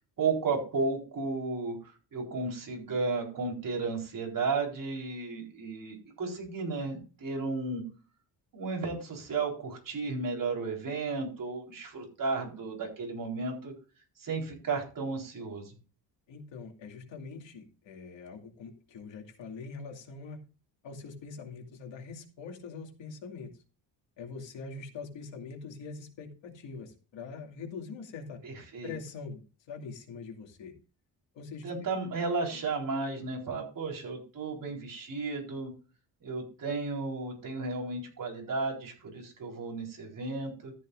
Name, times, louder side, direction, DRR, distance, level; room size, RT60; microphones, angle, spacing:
voice 1, 0.2-7.8 8.5-13.7 14.2-15.8 28.4-28.9 31.6-35.7 36.2-40.7, right 4 dB, 45° right, 0 dB, 4.2 m, -33 dB
voice 2, 16.3-20.4 20.8-23.5 24.2-28.4 28.8-30.7 31.3-31.9, left 4 dB, 75° left, 3 dB, 2.5 m, -43 dB
13.5 x 9.8 x 2.5 m, 0.34 s
cardioid pair, 140°, 44 cm